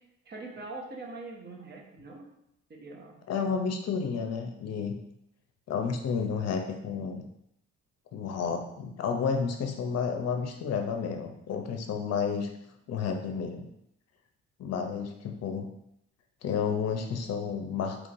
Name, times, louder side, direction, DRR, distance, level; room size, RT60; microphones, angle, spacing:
voice 1, 0.2-2.3 2.7-3.2, right 3 dB, 35° right, 0 dB, 0.9 m, -43 dB
voice 2, 3.3-5.0 5.7-7.2 8.1-12.5 12.9-13.6 14.6-15.7 16.4-18.1, left 6 dB, 55° left, 4 dB, 0.6 m, -31 dB
3.7 x 3.0 x 2.6 m, 0.79 s
cardioid pair, 90°, 30 cm